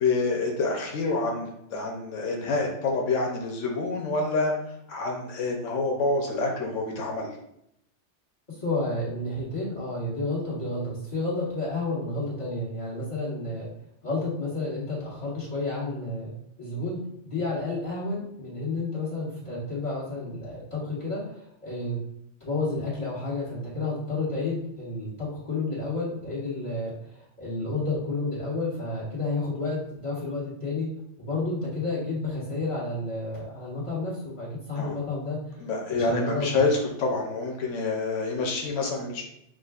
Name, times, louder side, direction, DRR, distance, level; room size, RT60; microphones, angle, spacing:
voice 1, 0.0-4.5 4.9-7.3 34.8-34.9 35.6-39.2, left 3 dB, 85° left, 1 dB, 1.0 m, -27 dB
voice 2, 8.5-13.7 14.0-16.3 16.6-22.0 22.4-30.9 31.2-35.4 35.9-36.7, left 2 dB, 25° left, -8 dB, 1.7 m, -31 dB
6.1 x 2.4 x 2.3 m, 0.78 s
omnidirectional pair, 1.2 m